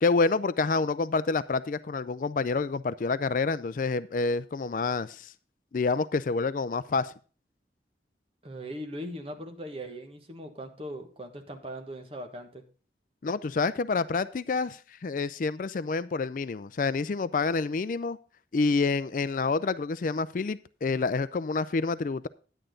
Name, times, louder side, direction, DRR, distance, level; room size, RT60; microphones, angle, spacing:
voice 1, 0.0-5.3 5.7-7.1 13.2-18.2 18.5-22.3, left 4 dB, 50° left, 0.4 m, -28 dB
voice 2, 8.4-12.6, equal, 35° right, 1.4 m, -39 dB
10.0 x 8.9 x 3.8 m
head